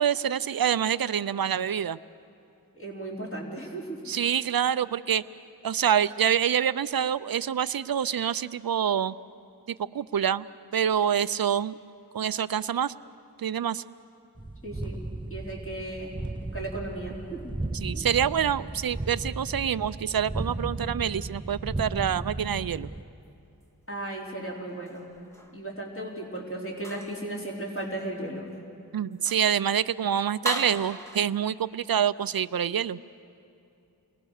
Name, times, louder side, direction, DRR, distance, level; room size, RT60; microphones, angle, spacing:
voice 1, 0.0-2.0 4.1-5.2 5.6-9.1 9.8-10.5 10.7-11.8 12.1-12.9 13.4-13.8 17.8-22.9 28.9-33.0, right 9 dB, 60° right, 16 dB, 0.5 m, -26 dB
voice 2, 2.7-4.0 14.6-15.0 15.3-16.1 16.5-17.5 17.9-18.1 23.9-25.1 25.5-28.5, right 1 dB, 30° left, -4 dB, 4.4 m, -35 dB
sound 1, 14.4-23.0, right 2 dB, 10° right, 0.5 m, -35 dB
sound 2, 24.7-25.6 26.8-27.3 27.8-27.9 28.5-28.6 29.1-29.6 30.4-31.2, equal, 5° left, 1.9 m, -37 dB
29.0 x 22.5 x 6.6 m, 2.6 s
wide cardioid pair, 75°, 41 cm